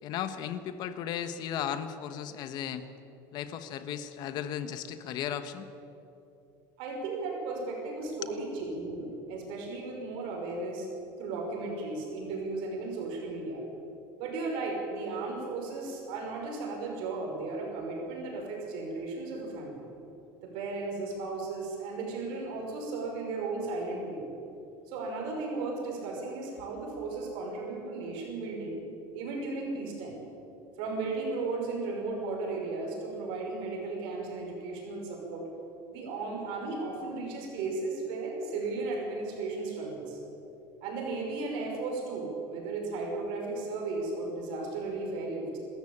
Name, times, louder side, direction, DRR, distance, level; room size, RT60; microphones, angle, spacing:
voice 1, 0.0-2.8 3.3-5.7 8.0-8.3, left 9 dB, 50° left, 10 dB, 1.3 m, -35 dB
voice 2, 6.8-10.9 11.2-13.6 14.2-19.8 20.4-24.2 24.9-28.8 29.1-30.2 30.8-35.5 35.9-40.2 40.8-45.6, right 3 dB, 65° right, 0 dB, 5.8 m, -35 dB
27.0 x 13.5 x 8.8 m, 2.9 s
cardioid pair, 145°, 9 cm